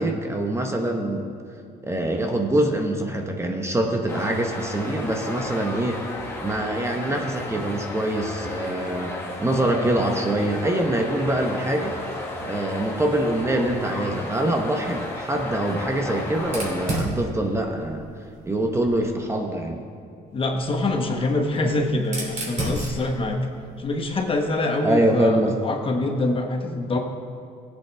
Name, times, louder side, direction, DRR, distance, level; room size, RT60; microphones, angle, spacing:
voice 1, 0.0-1.3 1.8-6.1 6.4-11.9 12.4-18.1 18.4-19.8 24.8-25.6, right 1 dB, 15° right, 3 dB, 1.0 m, -24 dB
sound 1, 4.1-17.0, left 1 dB, 15° left, 1.8 m, -34 dB
Fire, 16.4-19.2 20.3-24.5, right 1 dB, 40° right, 3.0 m, -34 dB
voice 2, 20.3-23.4 23.8-27.0, left 2 dB, 30° left, 3 dB, 1.1 m, -25 dB
16.5 x 8.4 x 3.5 m, 2.4 s
cardioid pair, 110°, 17 cm